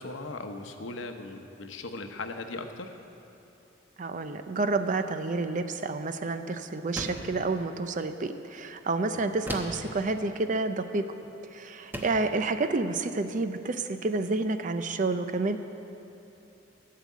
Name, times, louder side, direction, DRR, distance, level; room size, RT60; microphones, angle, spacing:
voice 1, 0.0-2.9 9.1-9.2, left 3 dB, 80° left, 6 dB, 0.8 m, -38 dB
voice 2, 4.0-11.0 11.5-15.6, right 3 dB, 40° right, 9 dB, 0.5 m, -29 dB
sound 1, 6.9-7.4 9.5-9.9 11.2-11.4 11.9-12.3, right 1 dB, 10° right, 0.8 m, -36 dB
13.0 x 6.6 x 8.3 m, 2.9 s
head